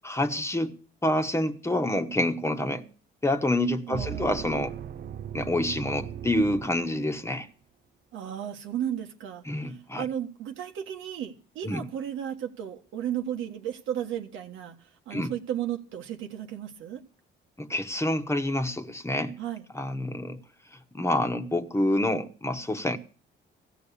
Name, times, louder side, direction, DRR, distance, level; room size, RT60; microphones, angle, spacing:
voice 1, 0.0-0.7 1.0-2.8 3.2-4.7 5.3-7.5 9.5-10.0 11.6-11.8 15.1-15.3 17.6-19.3 19.7-20.4 20.9-23.0, left 1 dB, 15° left, 1.2 m, -27 dB
sound 1, 3.9-7.4, right 10 dB, 50° right, 0.6 m, -38 dB
voice 2, 3.9-4.4 8.1-14.8 15.1-17.0 19.4-19.7, right 10 dB, 85° right, 1.4 m, -34 dB
15.5 x 6.2 x 8.5 m
cardioid pair, 90°, 20 cm